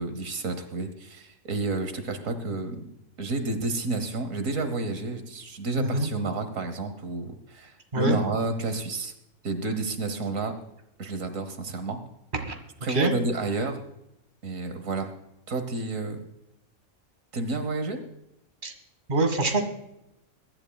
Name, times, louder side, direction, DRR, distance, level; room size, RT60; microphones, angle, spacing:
voice 1, 0.0-2.9 3.2-9.1 9.4-10.6 11.0-12.0 12.8-13.8 14.4-15.1 15.5-16.2 17.3-18.0, right 3 dB, 80° right, 8 dB, 1.6 m, -30 dB
voice 2, 5.8-6.1 7.9-8.2 12.4-12.5 12.9-13.1 18.6-18.7 19.1-19.6, right 2 dB, 40° right, 5 dB, 1.9 m, -24 dB
22.5 x 11.5 x 2.3 m, 0.84 s
omnidirectional pair, 1.4 m